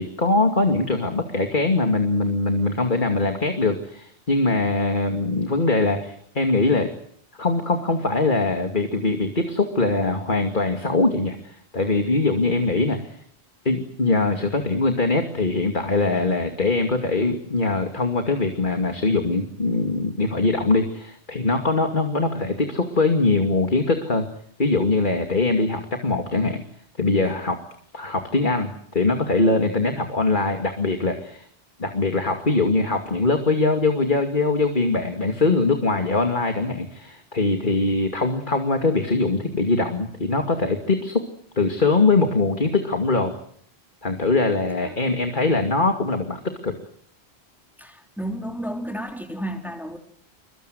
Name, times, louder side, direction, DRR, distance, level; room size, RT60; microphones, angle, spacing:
voice 1, 0.0-6.9 7.4-13.2 13.6-24.3 24.6-26.6 27.0-27.6 27.9-31.5 31.8-41.2 41.6-43.3 44.0-46.8, left 3 dB, 50° left, 5 dB, 2.6 m, -22 dB
voice 2, 47.8-50.0, equal, ahead, 3 dB, 3.3 m, -32 dB
28.0 x 23.5 x 8.0 m, 0.64 s
omnidirectional pair, 1.1 m